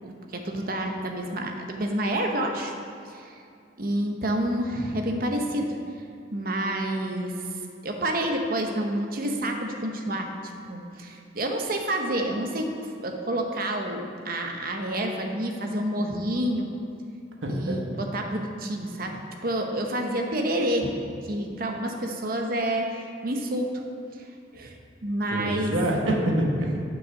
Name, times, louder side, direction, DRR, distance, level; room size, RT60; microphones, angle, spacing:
voice 1, 0.0-2.7 3.0-3.4 3.8-5.7 6.3-7.4 7.8-10.3 10.7-16.7 17.5-19.2 19.4-20.9 21.3-23.7 24.5-24.8 25.0-25.7, right 1 dB, 50° right, 3 dB, 0.9 m, -28 dB
voice 2, 17.4-18.0 25.3-26.8, right 1 dB, 85° right, 0 dB, 1.2 m, -26 dB
7.1 x 5.6 x 6.4 m, 2.5 s
head